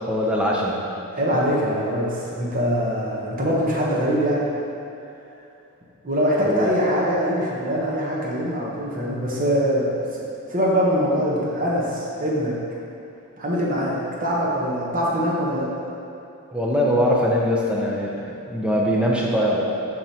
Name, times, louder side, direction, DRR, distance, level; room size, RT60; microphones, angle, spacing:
voice 1, 0.1-0.8 6.4-6.7 16.5-18.2 18.5-19.6, equal, 5° right, -3 dB, 0.6 m, -21 dB
voice 2, 1.1-4.4 6.0-10.2 10.5-12.5 13.4-15.7, equal, 40° right, -5 dB, 1.1 m, -23 dB
7.3 x 4.8 x 2.9 m, 2.8 s
head